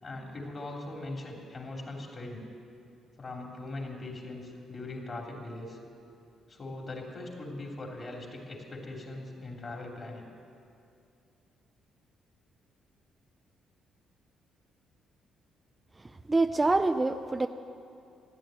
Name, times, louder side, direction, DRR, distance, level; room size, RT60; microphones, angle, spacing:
voice 1, 0.0-2.5 3.2-5.8 6.5-10.3, left 2 dB, 35° left, 0 dB, 3.4 m, -40 dB
voice 2, 16.3-17.5, right 2 dB, 20° right, 8 dB, 0.5 m, -25 dB
14.0 x 11.0 x 9.2 m, 2.6 s
cardioid pair, 90°, 0 cm